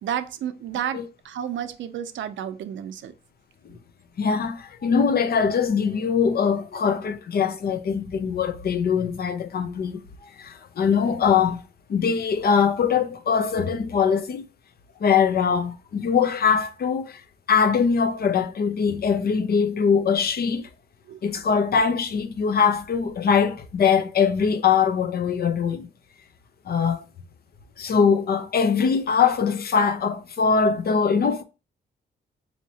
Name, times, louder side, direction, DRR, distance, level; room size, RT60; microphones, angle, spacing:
voice 1, 0.0-3.1 21.1-21.2, right 9 dB, 80° right, 0.5 m, -31 dB
voice 2, 4.2-10.0 10.4-11.6 11.9-14.4 15.0-17.2 17.5-20.7 21.2-25.9 26.7-27.0 27.8-31.4, left 6 dB, 55° left, 0.5 m, -22 dB
4.3 x 2.8 x 2.7 m
cardioid pair, 110°, 19 cm